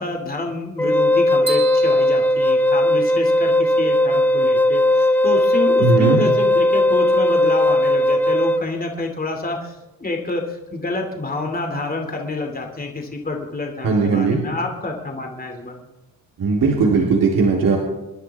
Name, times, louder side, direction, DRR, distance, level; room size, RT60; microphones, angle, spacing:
voice 1, 0.0-15.9, left 3 dB, 25° left, 2 dB, 2.6 m, -28 dB
Wind instrument woodwind instrument, 0.8-8.6, left 1 dB, 5° left, 0.5 m, -17 dB
sound 1, 1.5-3.4, right 4 dB, 15° right, 2.4 m, -33 dB
voice 2, 5.8-6.2 13.8-14.4 16.4-17.8, right 4 dB, 65° right, -3 dB, 3.5 m, -17 dB
28.0 x 10.5 x 3.6 m, 1.1 s
cardioid pair, 90°, 36 cm